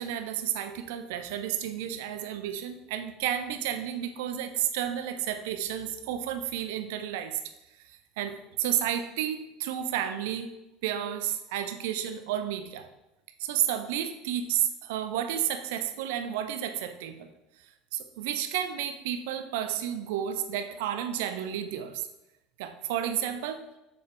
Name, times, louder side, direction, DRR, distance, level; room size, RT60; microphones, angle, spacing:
voice 1, 0.0-7.4 7.9-10.5 10.8-12.9 13.4-17.3 17.9-22.1 22.6-23.6, right 10 dB, 60° right, 9 dB, 0.7 m, -31 dB
7.9 x 7.2 x 3.3 m, 0.96 s
figure-of-eight pair, 70°, 0 cm